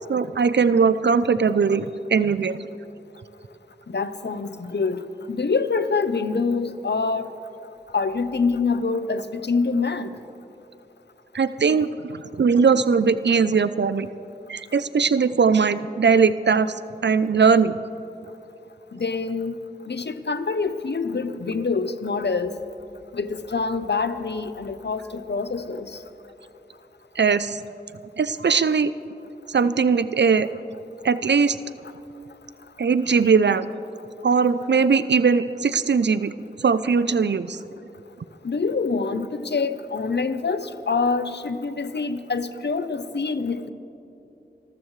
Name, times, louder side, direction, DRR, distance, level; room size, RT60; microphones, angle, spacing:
voice 1, 0.1-1.8 2.1-2.6 11.3-14.1 14.5-16.8 17.0-17.8 27.2-27.6 28.2-28.9 29.5-30.5 31.0-31.6 32.8-33.7 34.2-36.3 36.6-37.6, right 5 dB, 85° right, 14 dB, 0.5 m, -20 dB
voice 2, 3.9-5.0 5.3-7.3 7.9-10.1 18.9-19.6 19.9-22.5 23.1-25.9 38.4-43.7, left 4 dB, 75° left, 11 dB, 0.7 m, -25 dB
27.0 x 14.0 x 3.2 m, 2.9 s
wide cardioid pair, 45°, 18 cm